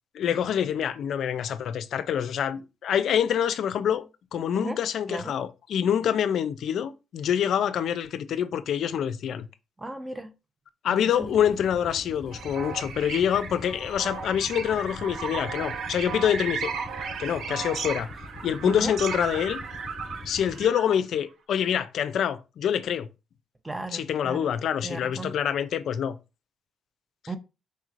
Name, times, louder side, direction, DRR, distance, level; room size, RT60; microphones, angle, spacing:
voice 1, 0.1-4.0 4.3-9.5 10.8-16.7 17.2-18.1 18.4-19.6 20.3-23.1 23.9-26.2, left 9 dB, 70° left, 0.4 m, -26 dB
voice 2, 9.8-10.3 10.9-11.3 18.6-18.9 23.6-24.5 24.8-25.4 27.3-27.4, right 2 dB, 15° right, 0.6 m, -35 dB
sound 1, 11.2-20.6, left 2 dB, 25° left, 1.1 m, -44 dB
sound 2, 12.3-21.0, right 5 dB, 70° right, 0.6 m, -35 dB
4.3 x 3.1 x 2.5 m
cardioid pair, 90°, 0 cm